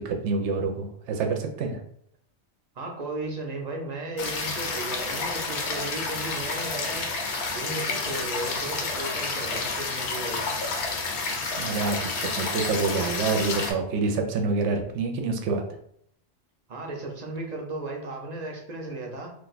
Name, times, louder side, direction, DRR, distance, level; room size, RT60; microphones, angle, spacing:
voice 1, 0.0-1.8 11.6-15.6, right 4 dB, 80° right, 4 dB, 0.9 m, -27 dB
voice 2, 2.7-7.1 7.5-10.4 16.7-19.3, right 2 dB, 45° right, 1 dB, 0.6 m, -35 dB
sound 1, 4.2-13.7, left 3 dB, 75° left, 0.9 m, -30 dB
2.5 x 2.2 x 3.9 m, 0.68 s
omnidirectional pair, 1.2 m